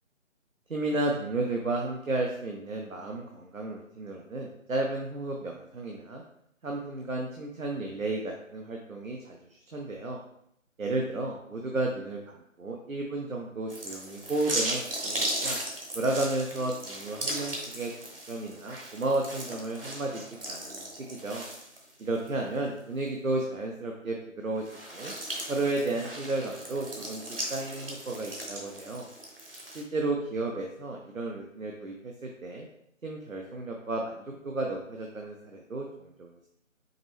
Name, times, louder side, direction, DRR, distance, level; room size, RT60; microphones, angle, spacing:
voice 1, 0.7-6.2 6.6-9.4 9.7-10.2 10.8-15.6 15.9-17.9 18.3-21.4 22.0-24.6 24.9-25.1 25.5-29.0 29.7-32.7 33.0-36.5, right 2 dB, 85° right, 0 dB, 0.8 m, -33 dB
sound 1, 13.7-22.3 22.7-22.8 24.6-29.8, right 1 dB, 45° right, 1.0 m, -37 dB
5.0 x 3.0 x 3.2 m, 0.73 s
figure-of-eight pair, 160°, 39 cm